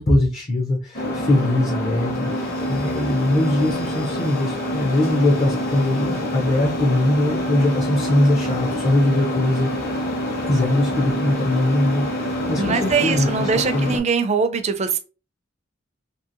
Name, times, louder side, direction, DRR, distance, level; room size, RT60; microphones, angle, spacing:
voice 1, 0.0-9.7 10.4-13.9, left 1 dB, 35° left, 0.5 m, -21 dB
sound 1, 0.9-14.0, equal, 55° left, 1.0 m, -26 dB
voice 2, 12.6-15.0, right 5 dB, 35° right, 0.4 m, -22 dB
2.8 x 2.7 x 2.5 m
head